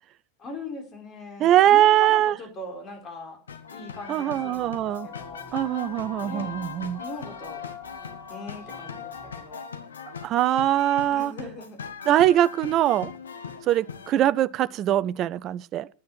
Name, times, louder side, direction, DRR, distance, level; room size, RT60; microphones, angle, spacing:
voice 1, 0.4-3.4 3.7-5.5 6.2-6.6 7.0-7.6 8.3-9.6 11.1-11.8, left 2 dB, 25° left, 4.2 m, -40 dB
voice 2, 1.4-2.3 4.1-5.1 5.5-7.0 10.2-11.3 12.1-13.1 13.7-15.9, right 12 dB, 35° right, 0.5 m, -22 dB
sound 1, 3.5-14.1, left 6 dB, 70° left, 1.4 m, -40 dB
sound 2, 4.4-9.4, left 7 dB, 45° left, 2.9 m, -43 dB
11.0 x 9.4 x 6.2 m
figure-of-eight pair, 90°, 0 cm